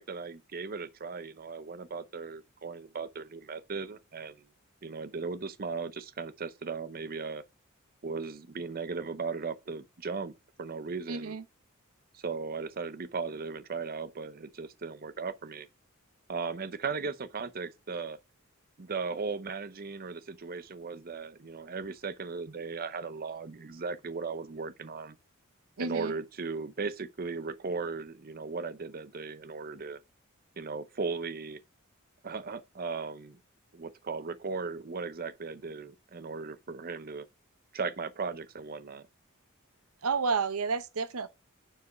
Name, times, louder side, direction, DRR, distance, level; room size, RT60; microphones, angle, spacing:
voice 1, 0.0-4.3 4.8-7.4 8.0-10.3 10.6-11.4 12.1-15.7 16.3-18.2 18.8-25.2 25.8-30.0 30.6-31.6 32.2-33.4 33.7-37.3 37.7-39.1, right 4 dB, 45° right, 0.7 m, -37 dB
voice 2, 11.1-11.4 25.8-26.2 40.0-41.3, right 4 dB, 85° right, 0.8 m, -30 dB
9.5 x 4.7 x 6.2 m
head